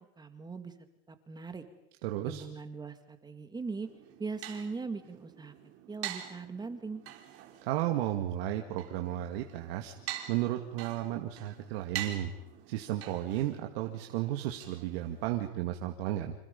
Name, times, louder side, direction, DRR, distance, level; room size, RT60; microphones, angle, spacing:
voice 1, 0.2-0.7 1.1-1.6 2.2-3.9 4.2-5.5 5.9-7.0, right 4 dB, 15° right, 8 dB, 2.0 m, -40 dB
voice 2, 2.0-2.4 7.6-9.9 10.3-12.3 12.7-16.3, right 13 dB, 65° right, 3 dB, 2.3 m, -33 dB
sound 1, 3.8-15.5, right 11 dB, 45° right, 4.1 m, -45 dB
28.0 x 27.0 x 5.4 m, 0.82 s
supercardioid pair, 130°, 31 cm